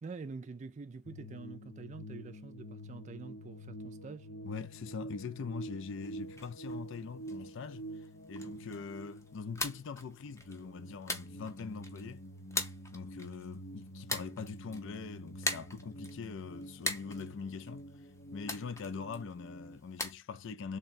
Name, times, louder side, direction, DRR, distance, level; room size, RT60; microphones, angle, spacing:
voice 1, 0.0-4.4, right 4 dB, 35° right, 0.4 m, -46 dB
sound 1, 1.0-19.8, right 1 dB, 90° left, 1.1 m, -47 dB
voice 2, 4.4-12.2 12.9-17.9 18.3-20.8, left 5 dB, 65° left, 0.4 m, -43 dB
sound 2, 5.9-20.1, left 2 dB, 15° left, 0.7 m, -43 dB
3.5 x 2.2 x 4.1 m
head